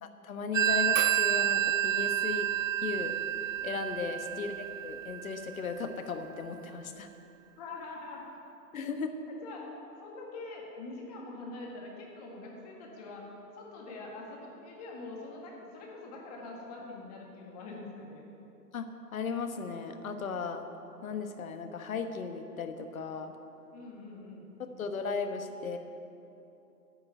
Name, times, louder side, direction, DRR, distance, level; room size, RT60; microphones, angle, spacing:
voice 1, 0.0-2.5 2.8-3.2 3.6-7.1 8.7-9.2 18.7-20.7 21.0-23.3 24.8-25.8, left 5 dB, 55° left, 7 dB, 1.3 m, -36 dB
Telephone, 0.5-5.9, right 11 dB, 55° right, 0.5 m, -29 dB
voice 2, 4.1-4.4 7.6-8.2 9.3-9.7 10.0-18.3 23.7-24.5, left 2 dB, 25° left, -1 dB, 1.7 m, -44 dB
10.0 x 8.5 x 9.3 m, 2.8 s
hypercardioid pair, 160°, 49 cm